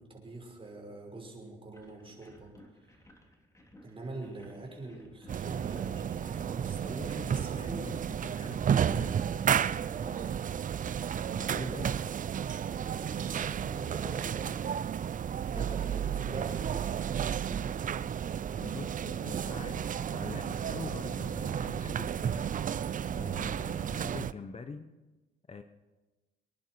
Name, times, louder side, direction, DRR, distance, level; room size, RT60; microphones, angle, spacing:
voice 1, 0.0-2.5 2.8-3.0 3.8-7.8 9.9-10.4 12.8-14.6 15.5-17.8, right 2 dB, 25° right, 0 dB, 5.7 m, -44 dB
sound 1, 1.7-9.9, equal, 15° left, 3.0 m, -58 dB
sound 2, 5.3-24.3, right 8 dB, 40° right, 0.5 m, -32 dB
voice 2, 6.8-7.9 8.2-9.4 11.3-12.0 15.5-16.3 18.6-22.5 23.1-24.9 25.5-25.6, left 4 dB, 30° left, 8 dB, 1.0 m, -44 dB
25.5 x 11.0 x 4.6 m, 1.1 s
cardioid pair, 90°, 20 cm